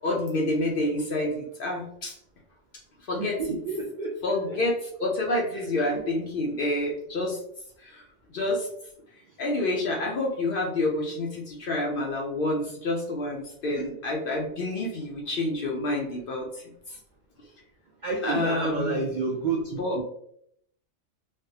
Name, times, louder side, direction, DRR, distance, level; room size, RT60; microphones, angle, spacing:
voice 1, 0.0-2.2 3.1-3.4 4.2-7.4 7.8-8.0 8.3-8.7 9.4-17.0 18.2-19.1 19.8-20.0, left 2 dB, 60° left, 0 dB, 0.6 m, -28 dB
voice 2, 3.2-4.6 5.5-5.6 5.9-6.0 13.7-13.9 14.8-14.9 18.0-20.0, right 4 dB, 65° right, -2 dB, 0.4 m, -30 dB
3.3 x 2.1 x 2.7 m, 0.70 s
omnidirectional pair, 1.3 m